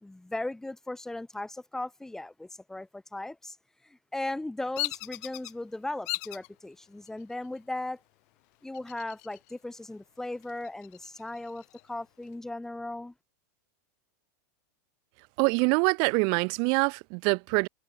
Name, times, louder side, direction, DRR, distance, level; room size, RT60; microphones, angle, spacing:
voice 1, 0.0-3.6 4.1-8.0 8.6-13.1, left 2 dB, 5° left, 1.6 m, -37 dB
Bird vocalization bird call bird song, 4.8-5.5 6.1-6.5 7.1-7.6 8.7-9.5 9.9-10.0 10.4-11.8, left 30 dB, 55° left, 3.4 m, -36 dB
voice 2, 15.4-17.7, right 37 dB, 45° right, 0.5 m, -25 dB
supercardioid pair, 140°, 10 cm